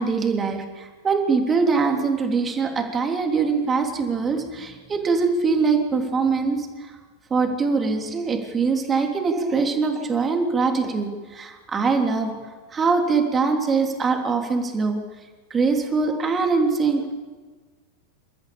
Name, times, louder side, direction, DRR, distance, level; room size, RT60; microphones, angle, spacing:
voice 1, 0.0-6.9 7.3-12.3 12.7-15.0 15.5-17.1, right 4 dB, 20° right, 3 dB, 3.4 m, -23 dB
29.0 x 14.0 x 7.2 m, 1.4 s
figure-of-eight pair, 90°, 0 cm